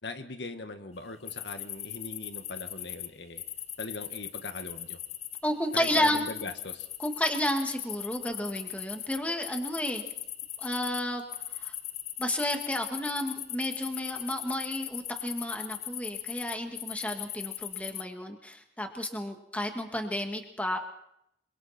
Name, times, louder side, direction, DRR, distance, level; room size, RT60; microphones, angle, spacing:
voice 1, 0.0-3.4 3.8-5.0 5.7-6.9, left 2 dB, 85° left, 7 dB, 1.8 m, -40 dB
sound 1, 1.3-3.1 3.4-5.4 5.7-11.0 11.3-18.0, left 11 dB, 35° left, 0.8 m, -39 dB
voice 2, 5.4-6.2 7.0-10.0 10.6-11.2 11.6-11.8 12.2-20.8, left 1 dB, 10° left, 4 dB, 2.2 m, -31 dB
26.5 x 24.5 x 4.5 m, 0.78 s
head